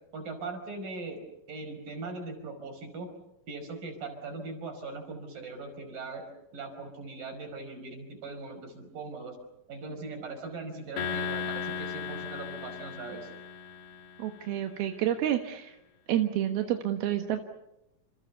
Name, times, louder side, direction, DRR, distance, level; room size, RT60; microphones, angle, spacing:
voice 1, 0.1-1.2 1.5-3.1 3.5-6.3 6.5-9.4 9.7-13.3, right 3 dB, 65° right, 6 dB, 6.9 m, -40 dB
sound 1, 11.0-14.4, left 7 dB, 90° left, 4.2 m, -36 dB
voice 2, 14.2-15.8 16.1-17.4, right 11 dB, 85° right, 5 dB, 3.4 m, -29 dB
29.5 x 28.0 x 7.0 m, 0.87 s
omnidirectional pair, 4.3 m